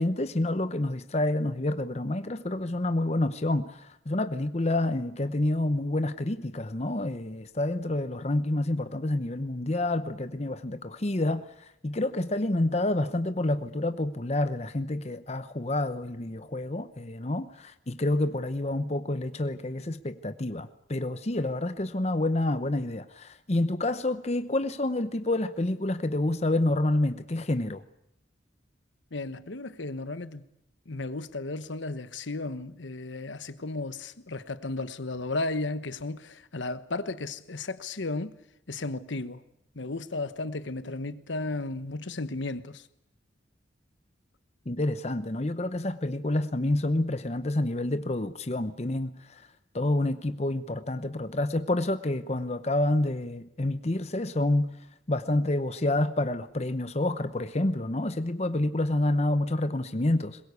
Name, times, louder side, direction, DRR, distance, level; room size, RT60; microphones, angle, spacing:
voice 1, 0.0-11.5 11.8-27.8 44.7-49.4 49.7-54.7 55.1-60.4, left 1 dB, 35° left, 0.8 m, -28 dB
voice 2, 29.1-30.4 30.9-38.3 38.7-39.4 39.7-42.8, left 2 dB, 75° left, 1.1 m, -34 dB
22.0 x 21.5 x 8.3 m
head